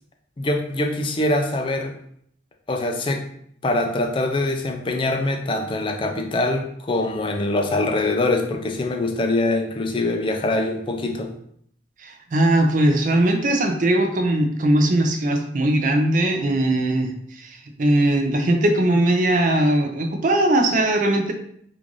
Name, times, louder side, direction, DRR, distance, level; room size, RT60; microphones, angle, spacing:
voice 1, 0.4-1.9 2.7-3.2 3.6-11.3, left 2 dB, 30° left, 4 dB, 0.4 m, -23 dB
voice 2, 12.0-21.3, right 1 dB, 45° right, 3 dB, 0.5 m, -20 dB
3.7 x 2.5 x 3.1 m, 0.67 s
head